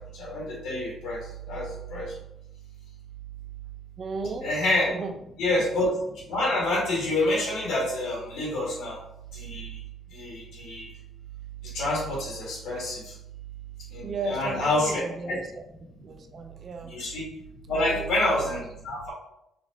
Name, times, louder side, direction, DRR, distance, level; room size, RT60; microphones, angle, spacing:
voice 1, 0.2-1.2 1.5-2.1 4.4-4.9 5.4-5.9 6.3-9.0 9.3-9.8 10.1-10.9 11.7-13.1 13.9-15.4 16.9-17.3 17.7-19.1, left 1 dB, 85° left, -4 dB, 1.5 m, -27 dB
voice 2, 4.0-4.5 4.9-5.2 5.5-5.6 14.0-15.6 16.0-17.0 17.7-18.5, right 3 dB, 50° right, 6 dB, 0.4 m, -36 dB
3.0 x 2.9 x 2.7 m, 0.82 s
cardioid pair, 90°, 0 cm